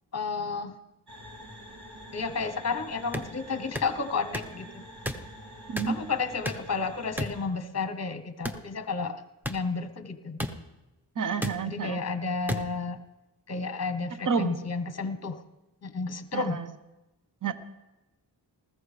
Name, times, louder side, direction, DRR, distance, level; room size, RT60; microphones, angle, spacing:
voice 1, 0.1-0.8 2.1-4.9 5.9-9.2 9.5-10.4 11.6-13.0 13.5-15.4 15.8-16.6, left 4 dB, 40° left, 10 dB, 0.9 m, -32 dB
sound 1, 1.1-7.5, equal, 70° right, 3.2 m, -47 dB
sound 2, 3.1-3.3 3.7-3.9 4.3-4.5 5.0-5.2 5.8-5.9 6.4-6.7 7.2-7.4 8.4-8.6 9.4-9.6 10.4-10.5 11.4-11.5 12.5-12.6, equal, 5° right, 0.9 m, -31 dB
voice 2, 11.2-12.0 14.2-14.6 16.3-16.7 17.4-17.5, right 6 dB, 50° right, 10 dB, 0.9 m, -29 dB
20.0 x 15.0 x 3.3 m, 1.0 s
wide cardioid pair, 70°, 41 cm